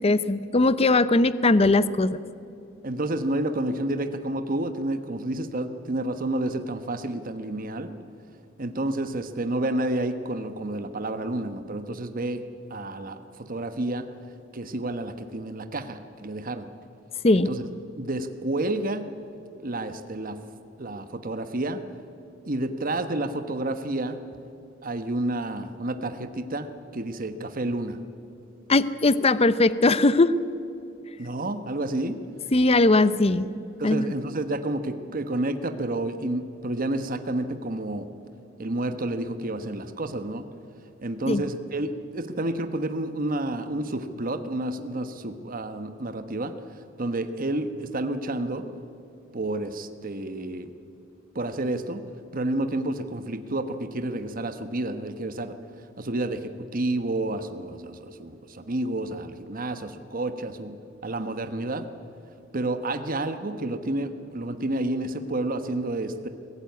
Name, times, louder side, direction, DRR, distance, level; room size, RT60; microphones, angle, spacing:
voice 1, 0.0-2.2 17.2-17.5 28.7-30.3 32.5-33.5 33.8-34.1 41.3-41.4, left 2 dB, 30° left, 15 dB, 0.6 m, -20 dB
voice 2, 2.8-7.9 8.6-12.4 12.7-14.1 14.5-16.7 17.3-17.6 17.9-19.1 19.6-20.4 20.8-21.8 22.5-24.2 24.8-28.0 31.2-32.2 33.8-38.1 38.6-40.4 41.0-46.6 47.0-48.7 49.3-50.7 51.3-52.0 52.3-55.6 56.0-60.8 61.0-61.9 62.5-66.3, right 1 dB, 45° right, 9 dB, 1.1 m, -30 dB
23.0 x 15.5 x 9.3 m, 2.6 s
head